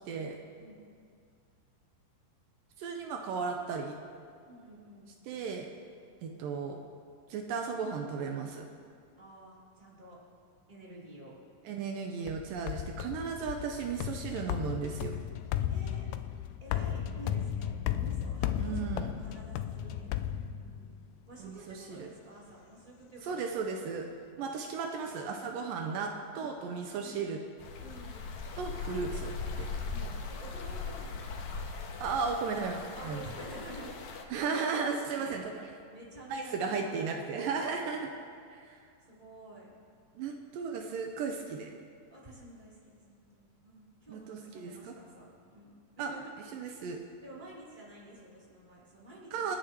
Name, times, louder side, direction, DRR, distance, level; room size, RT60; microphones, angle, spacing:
voice 1, 0.1-0.4 2.8-4.0 5.3-5.7 6.2-6.8 7.3-8.7 11.7-15.2 18.6-19.1 21.4-22.1 23.3-24.1 24.4-27.4 28.6-29.7 32.0-33.2 34.3-35.4 36.3-38.1 38.5-38.8 40.2-41.8 44.1-44.9 46.0-46.1 46.5-47.0 49.3-49.6, right 5 dB, 80° right, 3 dB, 2.4 m, -35 dB
voice 2, 0.6-0.9 4.4-5.2 9.2-10.2 10.7-11.3 15.7-16.1 16.6-21.0 21.3-23.4 26.3-26.6 26.9-27.2 27.8-28.2 29.9-31.4 32.9-33.9 35.1-35.3 35.9-37.2 39.0-39.7 42.1-46.3 47.2-49.6, right 1 dB, 15° right, -7 dB, 3.2 m, -50 dB
sound 1, 12.3-21.1, left 10 dB, 85° left, 1.7 m, -35 dB
sound 2, 27.6-34.2, left 4 dB, 65° left, 2.2 m, -39 dB
28.5 x 10.0 x 3.0 m, 2.2 s
omnidirectional pair, 4.0 m